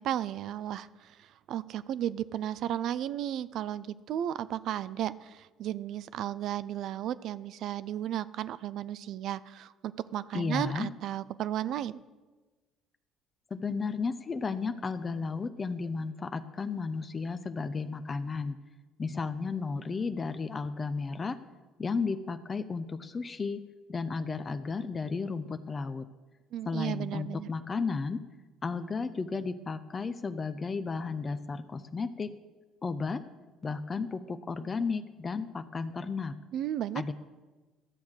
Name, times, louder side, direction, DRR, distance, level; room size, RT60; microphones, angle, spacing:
voice 1, 0.0-12.0 26.5-27.5 36.5-37.0, right 11 dB, 60° right, 16 dB, 0.4 m, -34 dB
voice 2, 10.3-10.9 13.5-18.6 19.0-21.4 21.8-26.0 26.7-28.2 28.6-32.3 32.8-33.2 33.6-36.3 36.9-37.1, left 4 dB, 30° left, 10 dB, 0.6 m, -33 dB
12.5 x 7.1 x 6.3 m, 1.2 s
supercardioid pair, 75°, 0 cm